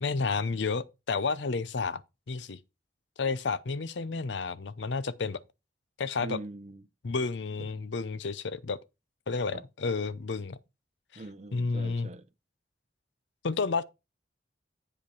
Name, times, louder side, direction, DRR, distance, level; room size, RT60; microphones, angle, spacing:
voice 1, 0.0-2.0 2.3-2.6 3.2-5.4 6.0-6.4 7.0-8.8 9.3-10.6 11.1-11.2 11.5-12.1 13.4-13.8, left 4 dB, 75° left, 0.6 m, -31 dB
voice 2, 6.2-6.8 9.5-9.6 11.2-12.3, right 2 dB, 35° right, 0.5 m, -42 dB
8.7 x 5.0 x 4.6 m
head